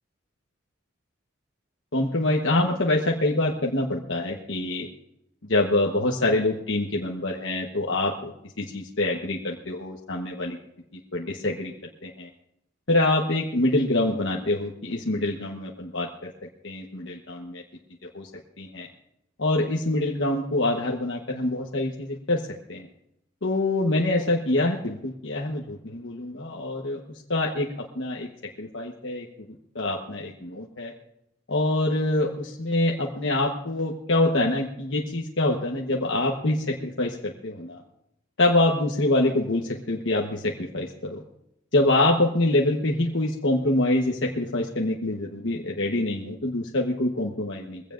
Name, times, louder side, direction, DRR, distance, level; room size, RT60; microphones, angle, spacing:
voice 1, 1.9-4.9 5.5-10.6 11.1-11.7 12.0-12.3 12.9-16.3 16.6-17.6 18.1-18.3 18.6-18.9 19.4-22.9 23.4-28.3 28.6-29.3 29.7-30.9 31.5-37.8 38.4-41.2 41.7-47.8, left 2 dB, 65° left, -1 dB, 1.2 m, -25 dB
21.5 x 16.5 x 2.6 m, 0.81 s
head